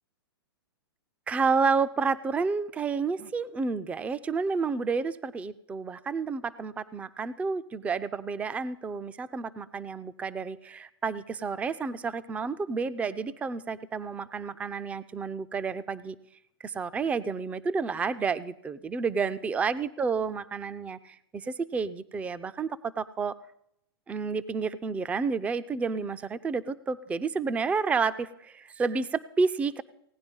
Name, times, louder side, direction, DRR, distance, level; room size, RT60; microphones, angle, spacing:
voice 1, 1.3-16.2 16.6-23.4 24.1-29.8, right 5 dB, 10° right, 13 dB, 0.4 m, -30 dB
17.5 x 9.8 x 5.3 m, 0.75 s
hypercardioid pair, 120°, 13 cm